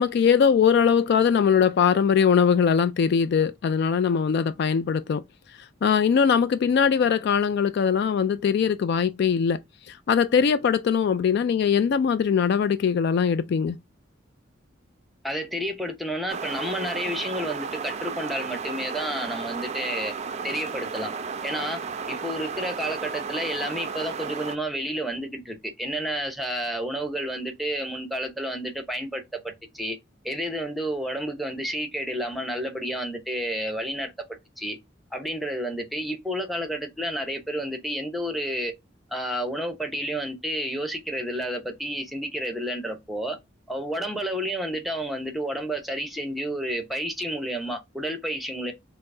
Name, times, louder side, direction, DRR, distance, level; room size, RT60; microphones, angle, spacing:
voice 1, 0.0-5.2 5.8-9.6 9.9-13.8, left 7 dB, 60° left, 0.3 m, -21 dB
voice 2, 15.2-20.1 20.4-21.1 21.4-21.8 22.1-30.0 30.2-34.3 34.6-34.8 35.1-38.7 39.1-43.4 43.7-48.7, equal, ahead, 0.7 m, -30 dB
sound 1, 16.3-24.6, right 5 dB, 35° right, 0.4 m, -33 dB
5.5 x 2.0 x 2.5 m
head